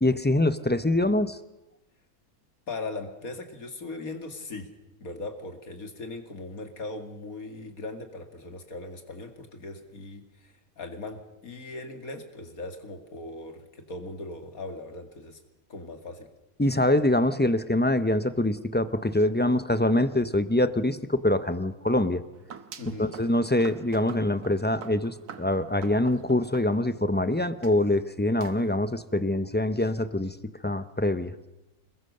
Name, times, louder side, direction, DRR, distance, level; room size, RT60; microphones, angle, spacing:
voice 1, 0.0-1.4 16.6-22.2 23.0-30.4 30.6-31.3, left 1 dB, 15° left, 12 dB, 0.3 m, -24 dB
voice 2, 2.7-4.7 5.0-15.4 15.7-16.3 22.8-23.1, left 2 dB, 70° left, 5 dB, 2.7 m, -39 dB
sound 1, 22.3-27.2 27.6-27.8 28.4-28.8, right 7 dB, 90° right, 1.7 m, -46 dB
27.5 x 21.0 x 6.6 m, 1.0 s
omnidirectional pair, 1.6 m